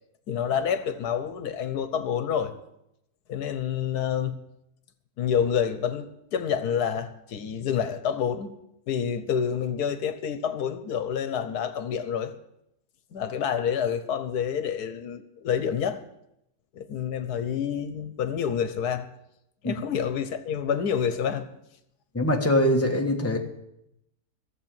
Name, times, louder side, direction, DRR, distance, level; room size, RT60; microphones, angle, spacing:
voice 1, 0.3-2.5 3.3-4.4 5.2-8.5 8.9-12.3 13.1-16.0 16.7-19.1 19.6-21.5, left 8 dB, 85° left, 1.5 m, -28 dB
voice 2, 22.1-23.4, left 1 dB, 10° left, 1.4 m, -23 dB
14.5 x 7.4 x 8.9 m
omnidirectional pair, 1.6 m